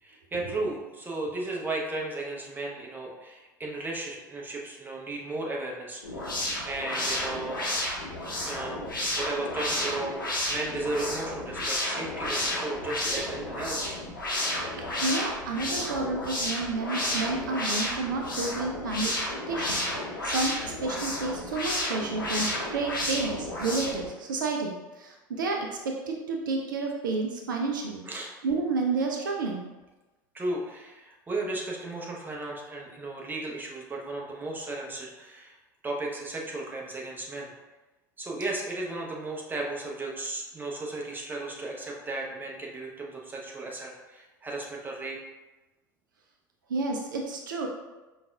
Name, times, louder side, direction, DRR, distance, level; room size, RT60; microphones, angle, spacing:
voice 1, 0.0-7.6 8.4-8.8 9.2-10.2 10.5-13.9 28.0-28.3 30.3-35.5 35.8-37.5 38.2-45.2, right 2 dB, 15° right, -2 dB, 0.8 m, -35 dB
sound 1, 6.0-24.1, left 1 dB, 85° left, 0.7 m, -31 dB
voice 2, 14.8-19.2 19.5-19.8 20.2-28.0 28.4-29.6 46.7-47.7, right 3 dB, 75° right, 1 dB, 0.4 m, -30 dB
5.1 x 2.3 x 2.3 m, 1.1 s
figure-of-eight pair, 75°, 11 cm